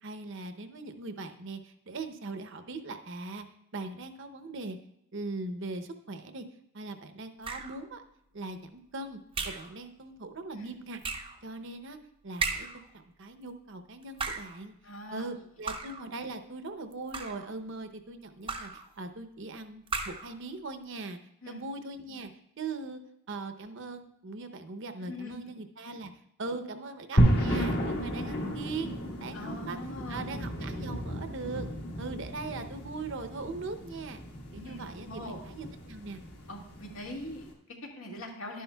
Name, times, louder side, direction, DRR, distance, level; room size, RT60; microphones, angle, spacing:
voice 1, 0.0-3.4 3.7-4.8 5.1-6.5 6.7-8.0 8.3-9.2 9.4-11.0 11.4-12.0 12.2-12.7 12.9-14.7 15.1-21.2 21.5-22.3 22.6-23.0 23.3-26.1 26.4-29.8 30.1-31.7 32.0-34.2 34.5-36.2, right 3 dB, 60° right, 9 dB, 0.7 m, -40 dB
sound 1, 7.4-7.9 9.3-9.7 11.0-11.4 12.4-12.9 14.0-14.6 15.7-16.1 16.9-17.5 18.5-18.9 19.9-20.3, right 4 dB, 25° right, 0.6 m, -35 dB
voice 2, 14.8-15.3 21.4-21.6 25.0-25.4 25.9-26.0 29.3-30.3 34.6-35.4 36.5-38.6, left 1 dB, 80° left, -1 dB, 1.9 m, -42 dB
sound 2, 27.2-37.4, equal, 50° left, 1.5 m, -32 dB
11.5 x 10.0 x 2.3 m, 0.79 s
head